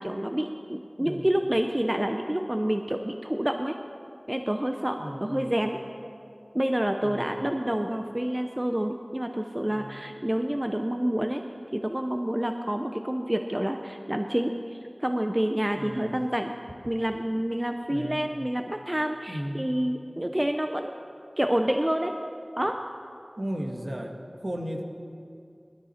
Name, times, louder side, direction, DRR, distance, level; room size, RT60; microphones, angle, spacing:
voice 1, 0.0-3.8 4.3-5.8 6.5-11.4 11.7-16.5 16.8-20.9 21.4-22.1 22.6-22.8, right 1 dB, 20° right, 5 dB, 0.7 m, -28 dB
voice 2, 1.0-1.3 5.0-5.6 7.0-7.4 9.6-10.1 15.7-16.2 17.9-18.2 19.3-19.7 23.4-24.8, equal, 55° right, 2 dB, 1.6 m, -35 dB
20.0 x 13.0 x 4.3 m, 2.5 s
wide cardioid pair, 45°, 0 cm